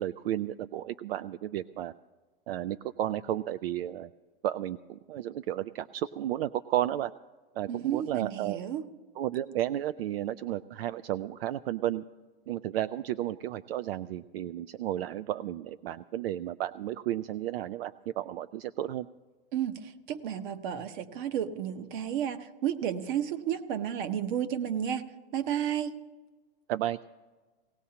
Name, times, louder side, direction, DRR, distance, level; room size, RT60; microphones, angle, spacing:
voice 1, 0.0-1.9 2.5-4.1 4.4-7.1 7.5-8.6 9.2-12.0 12.5-19.1 26.7-27.0, right 12 dB, 80° right, 15 dB, 0.4 m, -33 dB
voice 2, 7.7-8.8 19.5-25.1 25.3-26.0, right 9 dB, 55° right, 11 dB, 1.0 m, -32 dB
18.0 x 18.0 x 2.9 m, 1.3 s
hypercardioid pair, 135°, 29 cm